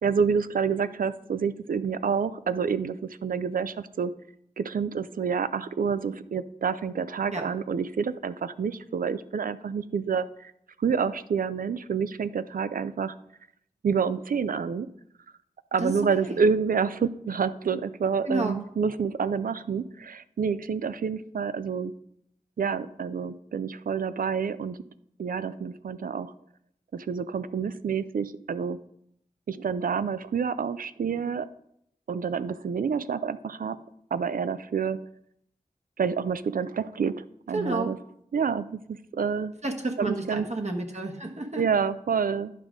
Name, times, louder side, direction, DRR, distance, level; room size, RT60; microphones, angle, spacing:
voice 1, 0.0-3.0 3.2-4.1 4.6-10.5 10.8-13.1 13.8-14.9 15.7-21.9 22.6-24.8 25.2-26.3 26.9-28.8 29.5-31.5 32.1-33.8 34.1-35.0 36.0-38.0 38.3-39.5 40.0-40.5 41.6-42.5, right 6 dB, 85° right, 14 dB, 0.4 m, -28 dB
voice 2, 18.3-18.6 37.5-37.9 39.6-41.6, right 2 dB, 50° right, 3 dB, 1.2 m, -30 dB
10.5 x 5.1 x 3.7 m, 0.74 s
wide cardioid pair, 55°, 14 cm